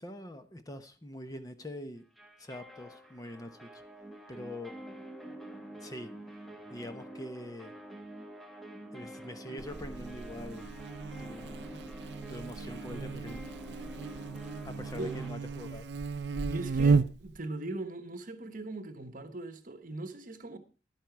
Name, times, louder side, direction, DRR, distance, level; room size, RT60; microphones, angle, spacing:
voice 1, 0.0-2.0 2.4-3.8 4.3-4.7 5.8-6.1 6.7-7.7 8.9-10.6 11.2-12.0 12.3-13.5 14.6-15.9, left 1 dB, 20° left, 0.9 m, -44 dB
sound 1, 2.2-15.3, right 1 dB, ahead, 1.3 m, -47 dB
Buzz, 9.6-17.4, right 4 dB, 70° right, 0.5 m, -33 dB
voice 2, 16.4-20.6, right 2 dB, 50° right, 1.2 m, -40 dB
11.0 x 8.9 x 4.6 m
head